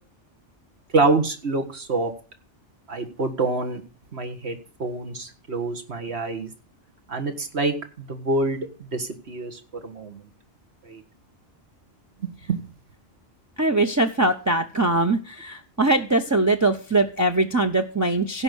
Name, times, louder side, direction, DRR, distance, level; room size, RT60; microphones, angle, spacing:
voice 1, 0.9-2.1 2.9-3.8 4.1-6.5 7.1-10.2 10.8-11.0 12.2-12.6, right 3 dB, 60° right, 6 dB, 2.0 m, -26 dB
voice 2, 13.6-18.4, right 2 dB, 15° right, 2 dB, 0.7 m, -22 dB
16.0 x 5.4 x 6.3 m, 0.36 s
omnidirectional pair, 1.2 m